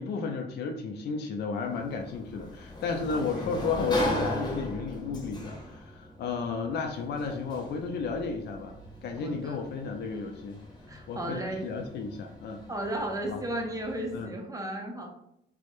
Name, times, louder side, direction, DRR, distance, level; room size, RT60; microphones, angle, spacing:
voice 1, 0.0-10.6 11.1-12.6 13.3-13.4 14.1-14.3, left 4 dB, 55° left, 4 dB, 0.4 m, -33 dB
Sliding door, 1.6-14.2, left 1 dB, 20° left, 0.8 m, -38 dB
voice 2, 9.2-9.6 10.9-11.7 12.7-15.1, right 1 dB, 15° right, 2 dB, 0.5 m, -34 dB
2.2 x 2.0 x 2.9 m, 0.76 s
cardioid pair, 90°, 20 cm